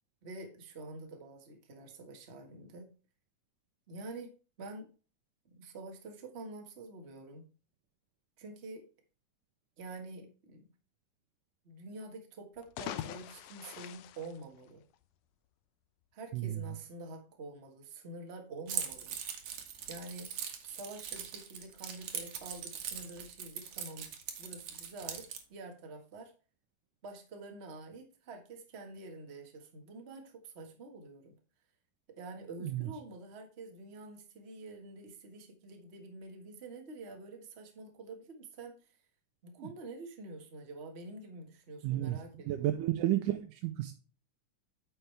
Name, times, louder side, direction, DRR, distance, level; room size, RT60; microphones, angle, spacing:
voice 1, 0.2-2.9 3.9-4.3 4.6-4.9 5.4-7.5 8.4-8.9 9.8-10.6 11.6-14.8 16.1-19.1 19.9-20.3 20.6-24.1 24.4-25.2 25.5-26.3 27.0-31.3 32.1-39.0 39.4-42.7, right 2 dB, 35° right, 3 dB, 1.0 m, -47 dB
sound 1, 12.5-15.2, left 12 dB, 90° left, 1.5 m, -43 dB
Keys jangling, 18.7-25.4, right 8 dB, 65° right, 2.3 m, -41 dB
voice 2, 41.8-42.2 42.5-43.9, right 14 dB, 85° right, 6 dB, 2.2 m, -32 dB
9.0 x 6.8 x 3.3 m, 0.36 s
omnidirectional pair, 3.7 m